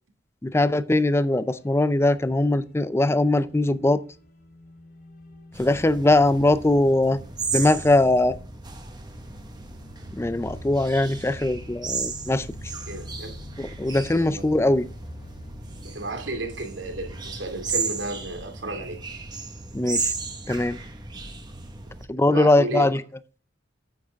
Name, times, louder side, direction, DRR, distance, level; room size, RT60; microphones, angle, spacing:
voice 1, 0.4-4.0 5.6-7.2 7.5-8.4 10.1-12.5 13.6-14.9 19.7-20.1 20.5-20.8 22.1-23.0, left 2 dB, 15° left, 0.4 m, -21 dB
sound 1, 1.1-17.2, left 1 dB, 55° left, 3.2 m, -47 dB
sound 2, 5.5-22.0, right 4 dB, 25° right, 1.4 m, -35 dB
voice 2, 12.9-13.4 14.2-14.5 15.8-19.0 22.3-22.9, right 2 dB, 75° right, 2.6 m, -33 dB
9.6 x 8.9 x 3.5 m
head